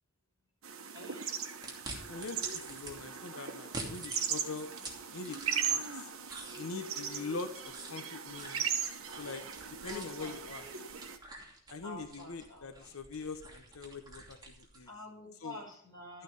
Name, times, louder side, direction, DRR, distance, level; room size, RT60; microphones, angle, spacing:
sound 1, 0.6-11.2, right 7 dB, 80° right, 1.3 m, -38 dB
voice 1, 0.9-1.4 9.9-10.4 11.8-12.9 14.9-16.2, left 1 dB, 20° left, -3 dB, 6.3 m, -48 dB
sound 2, 1.6-2.9 3.6-5.9 6.2-14.9, right 2 dB, 20° right, 2.7 m, -47 dB
voice 2, 2.1-4.7 5.1-5.4 5.6-6.1 6.6-8.6 9.2-9.4 9.8-10.6 11.7-14.9 15.4-15.6, left 4 dB, 85° left, 7 dB, 1.0 m, -43 dB
12.5 x 8.7 x 5.3 m, 0.66 s
head